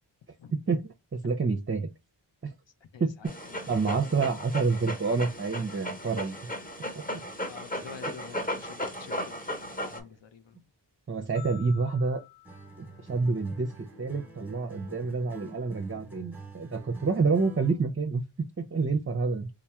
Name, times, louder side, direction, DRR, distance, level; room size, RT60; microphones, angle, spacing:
voice 1, 0.5-1.9 2.4-2.5 3.0-3.1 3.4-6.4 6.9-7.0 11.1-12.2 13.0-13.7 14.0-18.2 18.6-19.5, right 4 dB, 30° right, 0.5 m, -28 dB
voice 2, 2.9-3.4 7.5-10.7, left 7 dB, 75° left, 0.6 m, -48 dB
Dog, 3.2-10.0, equal, 20° left, 0.9 m, -36 dB
sound 1, 11.3-13.7, left 17 dB, 45° left, 1.1 m, -52 dB
Acoustic guitar, 12.4-17.8, right 2 dB, 5° right, 0.9 m, -47 dB
3.4 x 2.0 x 4.2 m
wide cardioid pair, 55°, 44 cm